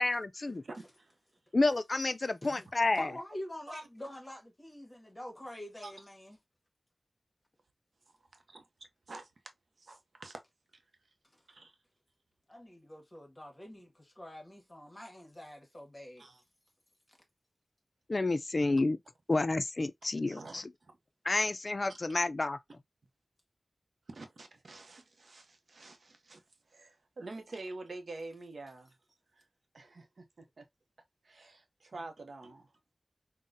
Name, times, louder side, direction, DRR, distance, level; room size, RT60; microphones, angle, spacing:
voice 1, 0.0-0.6 1.5-3.1 18.1-19.0 19.3-20.7 21.3-22.6, left 2 dB, 45° left, 0.3 m, -30 dB
voice 2, 0.6-1.1 2.9-3.0 3.7-3.8 5.8-5.9 8.3-8.6 9.1-9.3 9.8-10.4 11.5-11.7 16.2-16.4 20.3-20.6 21.9-22.0 24.1-26.4 26.7-28.9 29.3-29.4 29.7-30.7 31.2-32.7, right 2 dB, 85° right, 0.6 m, -47 dB
voice 3, 3.0-6.4 12.5-16.3 17.1-17.2, left 1 dB, 25° left, 1.1 m, -46 dB
3.8 x 2.1 x 2.5 m
wide cardioid pair, 85°, 0 cm